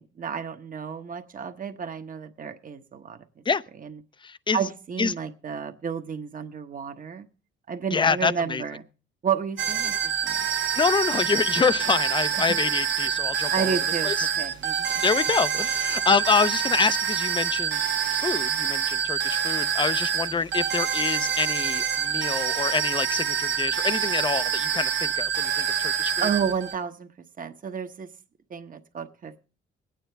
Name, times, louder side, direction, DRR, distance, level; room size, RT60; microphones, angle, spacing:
voice 1, 0.0-3.4 3.8-4.0 4.5-7.3 7.7-8.8 9.2-10.5 12.3-12.6 13.5-15.0 26.2-27.1 27.4-28.1 28.5-29.5, right 7 dB, 45° right, 1.1 m, -31 dB
voice 2, 4.2-4.6 5.0-5.1 7.9-8.6 10.7-13.8 14.0-14.3 15.0-17.8 18.1-26.3, left 5 dB, 25° left, 0.5 m, -26 dB
sound 1, 9.6-26.7, right 8 dB, 65° right, 0.9 m, -26 dB
22.0 x 9.3 x 3.4 m
cardioid pair, 90°, 20 cm